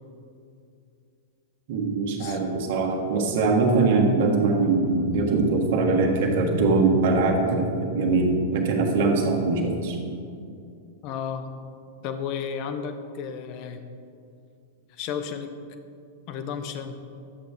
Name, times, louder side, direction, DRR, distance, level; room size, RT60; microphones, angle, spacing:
voice 1, 1.7-10.0, right 3 dB, 60° right, 0 dB, 1.5 m, -22 dB
voice 2, 11.0-11.5 12.0-13.9 14.9-15.6 16.3-17.0, left 7 dB, 45° left, 8 dB, 0.8 m, -33 dB
11.0 x 7.9 x 3.5 m, 2.5 s
figure-of-eight pair, 100°, 0 cm